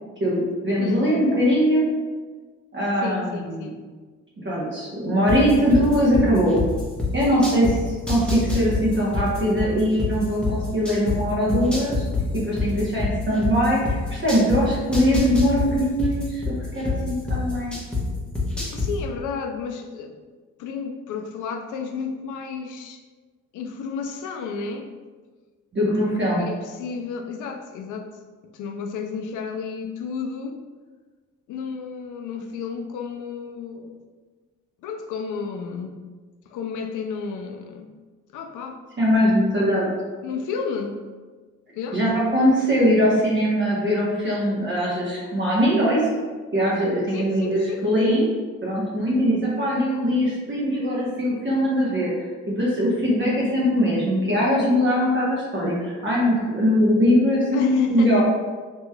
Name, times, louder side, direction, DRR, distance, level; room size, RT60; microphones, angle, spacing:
voice 1, 0.2-1.9 2.7-3.7 4.4-6.6 7.1-7.8 8.1-12.1 12.3-17.7 25.7-26.4 39.0-39.9 41.9-46.1 46.5-48.3 48.6-52.3 52.6-58.2, equal, 30° right, -7 dB, 1.1 m, -21 dB
voice 2, 0.8-1.1 3.0-3.8 18.7-20.2 20.6-23.0 23.5-24.9 25.8-26.1 26.4-28.2 28.5-30.6 31.5-34.0 34.8-35.9 36.5-37.9 38.3-38.8 39.6-39.8 40.2-41.0 41.7-42.0 47.1-47.8 57.5-58.2, left 5 dB, 60° left, 5 dB, 0.5 m, -32 dB
sound 1, 5.3-7.7 8.1-11.2 11.5-14.6 14.9-18.0 18.3-18.9, left 4 dB, 5° left, 1.0 m, -25 dB
3.1 x 2.9 x 2.3 m, 1.4 s
hypercardioid pair, 45°, 35 cm